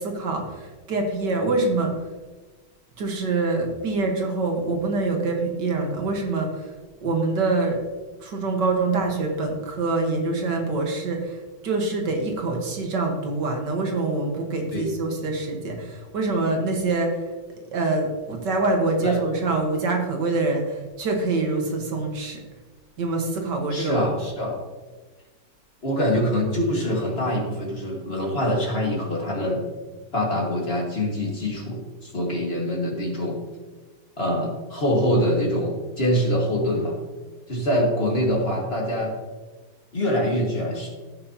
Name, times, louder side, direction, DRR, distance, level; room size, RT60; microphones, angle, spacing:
voice 1, 0.0-2.0 3.0-6.7 7.0-7.8 8.2-11.4 11.6-17.2 17.7-22.4 23.0-24.3, right 3 dB, 65° right, 2 dB, 2.0 m, -25 dB
voice 2, 19.0-19.4 23.7-24.6 25.8-29.6 30.1-33.4 34.2-37.0 37.5-39.1 39.9-40.9, equal, 35° left, -1 dB, 1.7 m, -24 dB
15.5 x 6.3 x 2.8 m, 1.3 s
omnidirectional pair, 2.1 m